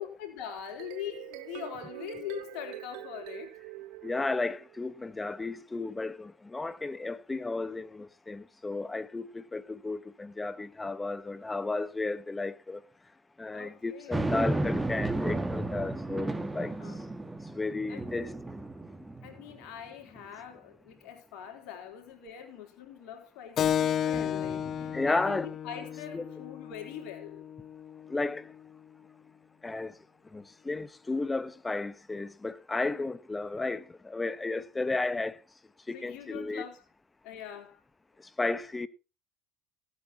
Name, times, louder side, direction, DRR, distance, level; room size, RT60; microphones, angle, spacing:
voice 1, 0.0-3.6 13.5-14.3 16.6-17.0 17.9-18.1 19.2-27.4 35.9-36.8 37.2-37.8, left 9 dB, 75° left, 3.5 m, -43 dB
sound 1, 0.6-4.9, right 18 dB, 80° right, 0.7 m, -44 dB
voice 2, 4.0-12.8 13.4-16.7 17.5-18.3 24.9-25.5 26.1-26.3 28.1-28.5 29.6-30.0 30.3-35.4 35.9-36.6 38.4-38.9, left 3 dB, 15° left, 1.0 m, -33 dB
sound 2, 14.1-19.6 20.2-20.3 24.1-25.2, right 2 dB, 15° right, 1.3 m, -33 dB
Keyboard (musical), 23.6-28.7, left 9 dB, 50° left, 0.6 m, -33 dB
15.5 x 8.4 x 4.2 m
supercardioid pair, 85°, 0 cm